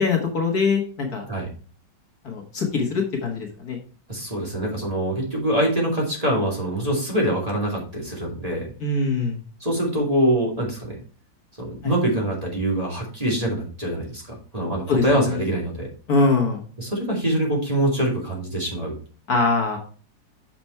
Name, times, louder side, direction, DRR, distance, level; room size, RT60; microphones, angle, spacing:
voice 1, 0.0-1.2 2.2-3.8 8.8-9.4 11.8-11.9 14.9-15.4 16.1-16.6 19.3-19.8, left 4 dB, 55° left, 2 dB, 2.0 m, -23 dB
voice 2, 4.1-8.7 9.6-11.0 11.6-14.2 14.5-15.9 16.8-18.9, right 1 dB, 20° right, -3 dB, 2.6 m, -24 dB
7.0 x 6.1 x 4.4 m, 0.39 s
omnidirectional pair, 2.0 m